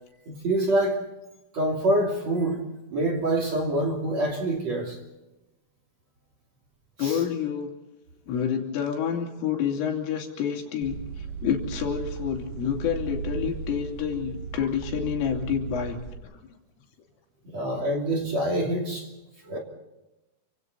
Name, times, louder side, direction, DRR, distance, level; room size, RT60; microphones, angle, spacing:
voice 1, 0.3-1.0 1.5-2.6 2.9-5.0 7.0-7.2 17.4-19.1 19.5-19.6, right 1 dB, 40° right, 1 dB, 3.2 m, -26 dB
voice 2, 7.0-7.7 8.3-16.0, left 8 dB, 75° left, 2 dB, 5.3 m, -28 dB
sound 1, 10.8-16.2, right 6 dB, 55° right, 3.1 m, -36 dB
30.0 x 25.0 x 4.1 m, 1.0 s
omnidirectional pair, 5.8 m